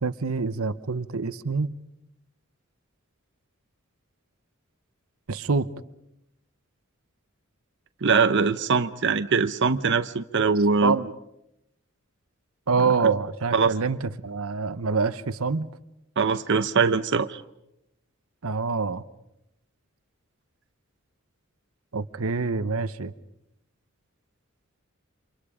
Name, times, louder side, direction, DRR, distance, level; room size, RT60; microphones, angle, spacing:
voice 1, 0.0-1.7 5.3-5.7 10.8-11.1 12.7-15.7 18.4-19.0 21.9-23.1, right 4 dB, 85° right, 1.0 m, -26 dB
voice 2, 8.0-11.0 13.5-13.7 16.2-17.4, right 5 dB, 60° right, 0.8 m, -22 dB
29.5 x 26.5 x 5.0 m
head